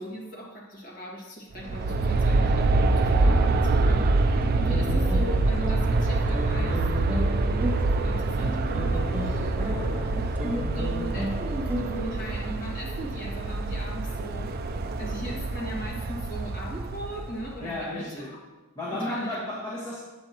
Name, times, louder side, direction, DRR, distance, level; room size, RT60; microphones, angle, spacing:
voice 1, 0.0-9.6 10.1-14.5 15.0-18.4 18.9-19.6, equal, 45° left, -3 dB, 1.8 m, -38 dB
Aircraft, 1.5-17.6, right 2 dB, 45° right, 0.4 m, -25 dB
sound 1, 4.4-12.5, equal, 5° right, 0.7 m, -35 dB
voice 2, 9.4-10.3 17.6-18.3 18.8-20.0, left 1 dB, 20° left, -7 dB, 1.4 m, -34 dB
8.9 x 7.8 x 2.9 m, 1.2 s
head